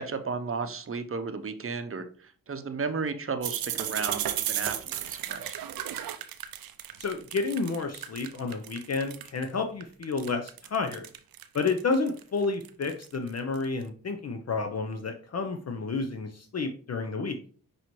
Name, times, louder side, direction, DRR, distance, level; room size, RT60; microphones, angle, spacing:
voice 1, 0.0-5.5, right 4 dB, 35° right, 9 dB, 0.7 m, -34 dB
sound 1, 3.4-9.4 9.8-13.7, right 11 dB, 70° right, 0.5 m, -34 dB
voice 2, 7.0-11.1 11.5-17.4, left 4 dB, 45° left, 5 dB, 0.6 m, -30 dB
5.7 x 2.7 x 3.0 m, 0.43 s
supercardioid pair, 45°, 37 cm